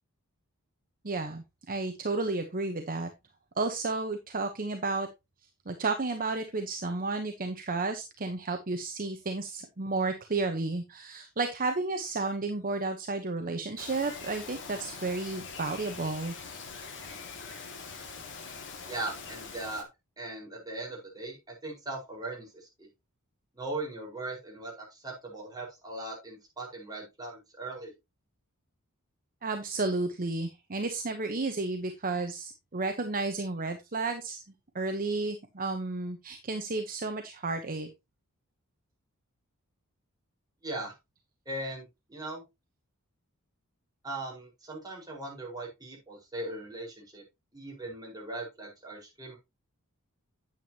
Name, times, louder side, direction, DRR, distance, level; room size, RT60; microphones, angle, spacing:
voice 1, 1.0-3.1 3.6-5.1 5.7-16.3 29.4-34.4 34.7-37.9, right 3 dB, 40° right, 6 dB, 1.0 m, -32 dB
Bird vocalization bird call bird song, 13.8-19.8, left 5 dB, 60° left, 2.1 m, -43 dB
voice 2, 18.8-19.8 20.2-22.9 23.6-27.9 40.6-41.0 41.4-41.8 42.1-42.4 44.0-47.2 47.5-49.4, right 2 dB, 20° right, -2 dB, 4.7 m, -39 dB
9.1 x 9.1 x 2.9 m, 0.23 s
head